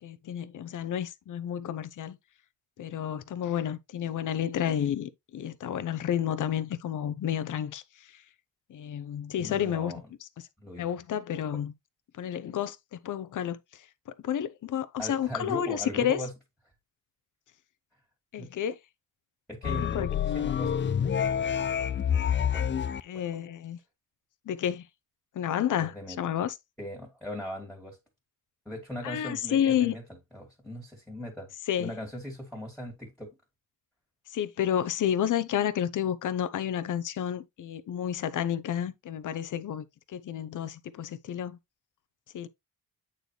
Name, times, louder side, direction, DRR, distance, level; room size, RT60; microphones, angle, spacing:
voice 1, 0.0-2.2 2.8-8.2 8.7-9.9 10.2-10.3 10.8-11.7 12.2-13.9 14.2-16.2 18.3-18.8 19.7-20.1 23.0-23.8 24.5-24.9 25.3-26.5 29.0-30.0 31.7-31.9 34.3-41.6 42.3-42.5, left 10 dB, 60° left, 0.8 m, -30 dB
voice 2, 9.4-10.0 10.6-10.9 15.0-16.3 18.4-18.5 19.5-20.7 22.4-22.7 23.1-23.2 25.8-26.2 26.8-28.0 28.7-30.0 30.3-31.5 31.8-33.3, left 1 dB, ahead, 2.4 m, -39 dB
sound 1, 19.6-23.0, left 8 dB, 35° left, 0.4 m, -27 dB
8.8 x 4.1 x 3.2 m
cardioid pair, 115°, 35 cm